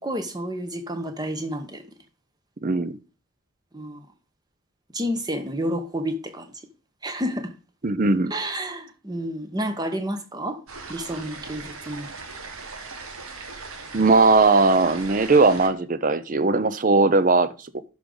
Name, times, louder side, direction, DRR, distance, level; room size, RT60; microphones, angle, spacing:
voice 1, 0.0-1.8 3.7-4.0 4.9-6.5 7.0-7.5 8.3-10.6 10.9-12.1, equal, 20° right, 8 dB, 0.9 m, -30 dB
voice 2, 2.6-3.0 7.8-8.3 13.9-17.5, right 3 dB, 40° right, 14 dB, 0.5 m, -19 dB
sound 1, 10.7-15.7, right 4 dB, 80° right, 1.5 m, -39 dB
12.0 x 5.1 x 3.8 m, 0.33 s
head